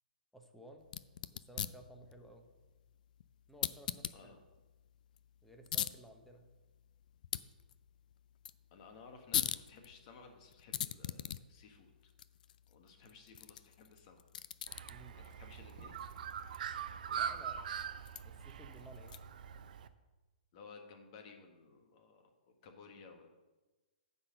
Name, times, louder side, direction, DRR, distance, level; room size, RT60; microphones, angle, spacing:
voice 1, 0.3-0.9 1.3-2.5 3.5-4.4 5.4-6.5 14.9-15.2 17.1-17.6 18.2-19.2, right 1 dB, 5° left, 3 dB, 1.0 m, -56 dB
sound 1, 0.8-19.5, left 10 dB, 60° left, 0.4 m, -44 dB
voice 2, 8.7-11.9 12.7-14.2 15.1-16.0 20.5-23.3, left 4 dB, 45° left, 4 dB, 1.5 m, -56 dB
Bird, 14.7-19.9, right 8 dB, 60° right, 0.6 m, -42 dB
9.5 x 4.0 x 6.5 m, 1.2 s
hypercardioid pair, 125°, 5 cm